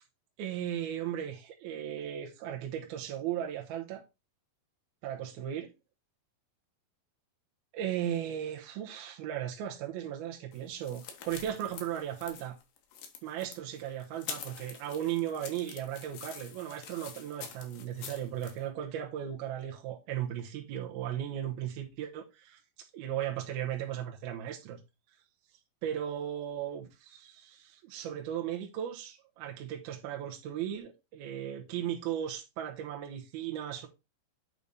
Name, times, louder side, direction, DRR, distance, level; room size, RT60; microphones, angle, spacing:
voice 1, 0.4-4.0 5.0-5.7 7.7-12.6 13.2-24.8 25.8-33.9, right 10 dB, 70° right, 2.7 m, -36 dB
sound 1, 10.5-18.6, left 8 dB, 65° left, 2.7 m, -46 dB
8.6 x 5.0 x 4.1 m
omnidirectional pair, 4.8 m